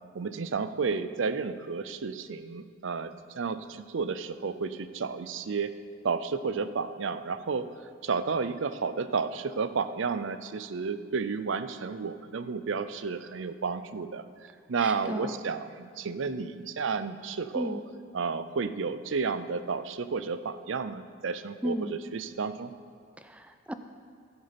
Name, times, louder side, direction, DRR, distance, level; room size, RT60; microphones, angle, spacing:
voice 1, 0.1-5.7 6.0-7.7 8.0-17.8 18.1-22.7, right 5 dB, 65° right, 12 dB, 0.5 m, -32 dB
voice 2, 14.8-15.4 17.5-17.8 21.6-21.9 23.2-23.7, equal, 5° right, 8 dB, 0.4 m, -34 dB
14.5 x 8.1 x 5.2 m, 2.1 s
head